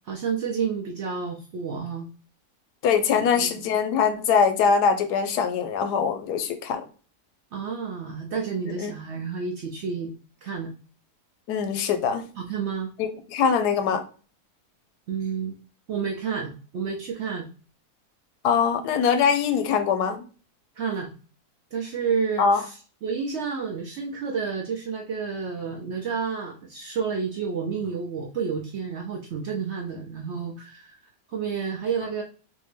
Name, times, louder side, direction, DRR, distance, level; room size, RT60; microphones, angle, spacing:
voice 1, 0.0-2.1 3.3-3.5 7.5-10.1 10.4-10.7 12.4-12.9 15.1-15.6 15.9-17.5 20.8-21.1 21.7-22.8 23.0-31.0 31.3-32.2, right 6 dB, 70° right, 0.6 m, -30 dB
voice 2, 2.8-6.8 8.8-8.9 11.5-12.3 13.0-14.0 18.4-20.2 22.4-22.6, left 6 dB, 90° left, 1.2 m, -22 dB
3.5 x 2.6 x 3.2 m
omnidirectional pair, 1.7 m